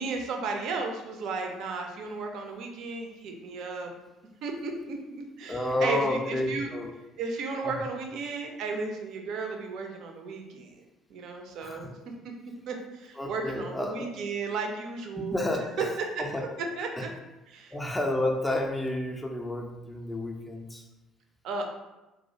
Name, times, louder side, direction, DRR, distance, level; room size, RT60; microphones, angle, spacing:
voice 1, 0.0-3.9 4.4-6.7 7.2-10.7 11.1-11.9 12.2-12.3 12.7-15.4 15.8-15.9 16.1-17.1 17.5-17.7 21.4-21.7, right 4 dB, 60° right, 3 dB, 0.4 m, -34 dB
voice 2, 5.5-6.9 7.6-7.7 11.6-11.9 13.2-14.1 15.3-15.9 16.2-16.4 17.0-17.1 17.7-20.9, left 1 dB, 15° left, 2 dB, 0.4 m, -30 dB
2.3 x 2.0 x 2.6 m, 1.0 s
hypercardioid pair, 55°, 0 cm